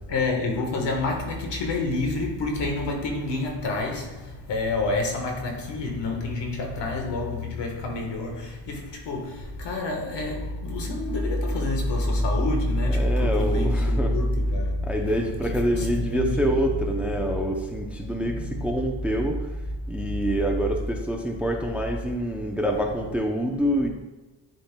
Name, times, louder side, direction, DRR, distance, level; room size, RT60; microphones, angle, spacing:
voice 1, 0.0-16.8 17.1-17.4 18.0-18.8 20.0-20.4, left 2 dB, 65° left, 1.5 m, -27 dB
voice 2, 12.9-14.1 14.9-19.4 19.9-23.9, equal, 5° right, 0.6 m, -26 dB
10.5 x 4.3 x 2.2 m
cardioid pair, 105°, 46 cm